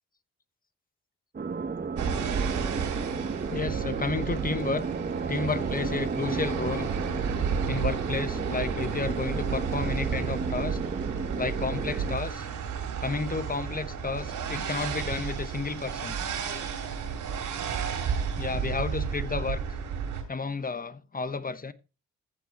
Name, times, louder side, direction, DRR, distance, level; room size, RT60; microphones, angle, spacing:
sound 1, 1.3-12.1, right 5 dB, 30° right, 1.0 m, -33 dB
sound 2, 2.0-20.2, right 6 dB, 75° right, 3.1 m, -32 dB
voice 1, 3.5-4.9 5.3-6.9 7.7-10.8 11.4-12.5 13.0-16.2 18.4-19.6 20.3-21.7, left 4 dB, 30° left, 1.0 m, -31 dB
14.5 x 7.0 x 3.0 m
supercardioid pair, 60°, 31 cm